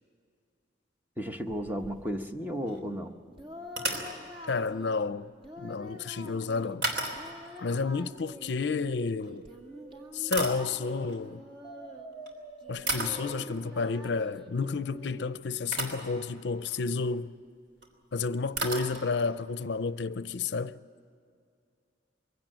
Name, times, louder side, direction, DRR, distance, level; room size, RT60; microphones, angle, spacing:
voice 1, 1.2-3.1, equal, 10° right, 1.0 m, -34 dB
sound 1, 1.2-2.4 2.6-2.8 3.7-4.2 6.8-7.5 9.2-9.4 10.0-11.2 12.1-12.3 12.9-13.3 15.1-15.2 15.7-16.1 16.6-16.9 17.8-17.9 18.1-18.2 18.5-19.3, right 2 dB, 65° right, 3.4 m, -34 dB
Singing, 3.3-5.1 5.4-6.8 7.1-8.9 9.3-12.1 12.6-15.3, left 1 dB, 30° right, 1.9 m, -47 dB
voice 2, 4.5-5.3 5.6-6.9 7.6-9.4 10.1-11.4 12.7-17.3 18.1-20.8, left 4 dB, 65° left, 0.5 m, -31 dB
sound 2, 7.8-10.6 11.6-14.6, right 2 dB, 15° left, 3.2 m, -48 dB
23.0 x 16.5 x 9.1 m
head